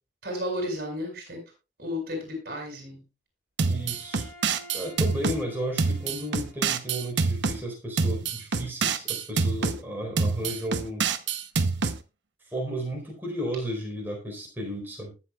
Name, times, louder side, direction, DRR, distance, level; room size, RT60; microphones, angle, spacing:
voice 1, 0.2-1.4 1.8-3.0, left 1 dB, 50° right, 2 dB, 6.5 m, -33 dB
sound 1, 3.6-5.4 5.8-7.6 8.0-9.8 10.2-12.0, right 4 dB, 70° right, 0.8 m, -26 dB
Bowed string instrument, 3.7-7.1, equal, 50° left, 3.9 m, -50 dB
voice 2, 3.7-4.3 4.7-11.1 12.5-15.1, equal, 10° right, -1 dB, 4.3 m, -33 dB
20.0 x 7.5 x 2.4 m, 0.29 s
head